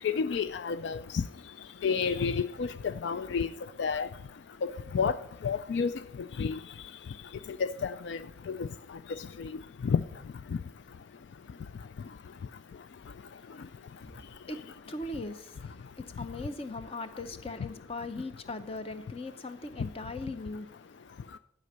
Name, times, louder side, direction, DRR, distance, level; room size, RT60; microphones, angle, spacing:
voice 1, 0.0-1.2 1.8-3.5 3.8-4.1 4.6-5.2 5.4-6.0 6.4-6.6 7.6-8.2 8.5-8.7 9.4-9.5 9.8-10.0, left 6 dB, 65° left, 0.3 m, -30 dB
voice 2, 13.8-20.7, left 2 dB, 30° left, 0.7 m, -40 dB
11.5 x 5.1 x 6.6 m
head